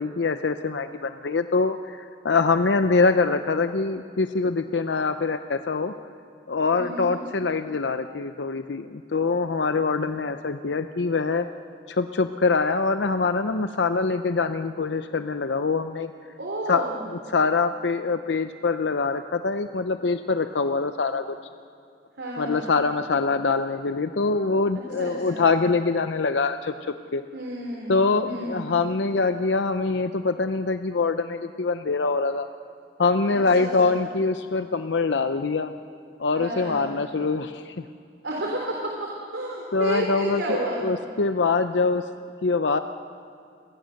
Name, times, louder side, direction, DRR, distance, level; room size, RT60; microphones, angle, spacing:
voice 1, 0.0-5.9 6.5-11.5 11.9-16.1 16.7-16.8 17.3-21.4 22.4-27.2 27.9-32.5 33.0-35.7 36.2-37.8 39.7-42.0 42.4-42.8, left 4 dB, 75° left, 9 dB, 0.6 m, -24 dB
voice 2, 6.7-7.2 16.4-17.0 22.2-22.7 25.0-25.4 27.3-28.7 33.2-34.0 36.3-37.0 38.2-40.8, right 1 dB, 85° right, -2 dB, 3.6 m, -31 dB
29.5 x 22.0 x 6.5 m, 2.3 s
head